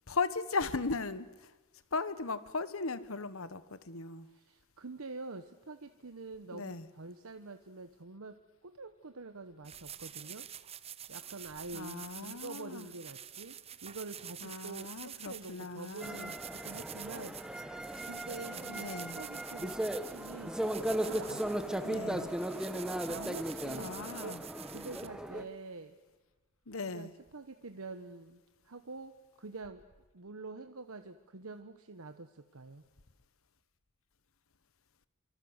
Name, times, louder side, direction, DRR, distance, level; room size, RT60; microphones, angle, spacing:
voice 1, 0.1-1.5 1.9-4.3 6.5-6.9 11.7-12.9 14.4-16.3 18.7-19.2 21.8-22.3 23.8-24.4 26.7-27.1, left 4 dB, 70° left, 1.3 m, -37 dB
voice 2, 4.3-10.5 11.1-20.6 21.0-22.4 22.9-24.4 24.7-26.0 26.9-29.8 30.1-32.8, right 3 dB, 80° right, 1.2 m, -47 dB
sound 1, 9.6-25.1, right 9 dB, 30° right, 0.9 m, -48 dB
sound 2, 16.0-25.4, right 1 dB, 5° right, 1.4 m, -37 dB
26.0 x 25.5 x 8.1 m
head